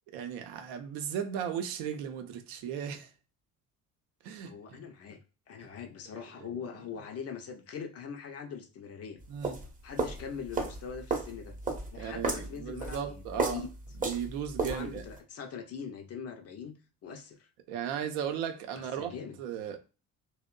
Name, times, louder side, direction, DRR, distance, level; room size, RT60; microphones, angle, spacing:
voice 1, 0.1-3.1 4.2-4.8 9.3-9.6 11.9-13.6 14.0-15.0 17.7-19.1 19.4-19.8, right 8 dB, 60° right, 0.6 m, -36 dB
voice 2, 4.4-5.2 5.5-9.2 9.8-11.6 11.9-13.7 14.6-17.5 18.7-19.4, left 6 dB, 35° left, 0.5 m, -42 dB
sound 1, 9.2-15.2, right 3 dB, 15° right, 0.7 m, -34 dB
2.7 x 2.0 x 2.2 m
figure-of-eight pair, 50°, 46 cm